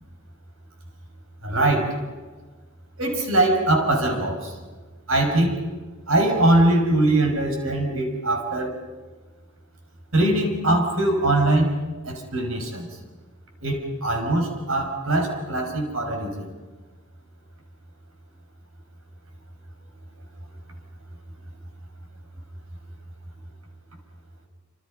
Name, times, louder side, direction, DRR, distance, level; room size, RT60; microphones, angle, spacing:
voice 1, 1.4-2.0 3.0-4.5 5.1-5.6 6.1-8.8 10.1-12.9 13.6-16.5, right 1 dB, 80° right, 4 dB, 6.0 m, -22 dB
28.0 x 27.5 x 5.4 m, 1.3 s
head